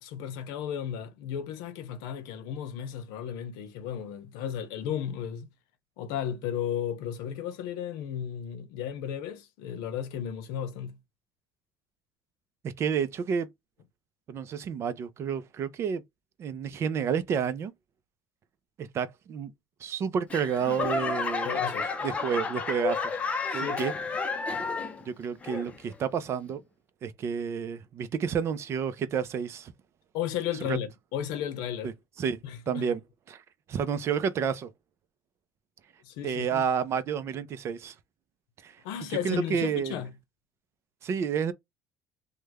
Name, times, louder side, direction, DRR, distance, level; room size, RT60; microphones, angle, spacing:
voice 1, 0.0-5.5 6.0-11.0 21.4-21.9 23.5-23.9 30.1-31.9 32.4-32.9 36.0-36.6 38.8-40.1, left 9 dB, 85° left, 0.8 m, -34 dB
voice 2, 12.6-13.5 14.3-16.0 16.4-17.7 18.8-19.5 19.8-21.6 22.0-23.2 23.5-23.9 25.0-26.6 27.0-29.7 30.7-30.8 31.8-31.9 32.2-32.4 32.7-33.0 33.3-33.4 33.7-34.7 36.2-37.9 38.6-38.8 39.1-40.0 41.0-41.5, right 7 dB, 40° right, 0.5 m, -30 dB
Laughter / Clapping / Crowd, 20.3-25.1 25.4-25.9 26.5-26.6, left 4 dB, 20° left, 0.6 m, -31 dB
3.2 x 2.2 x 3.4 m
cardioid pair, 140°, 7 cm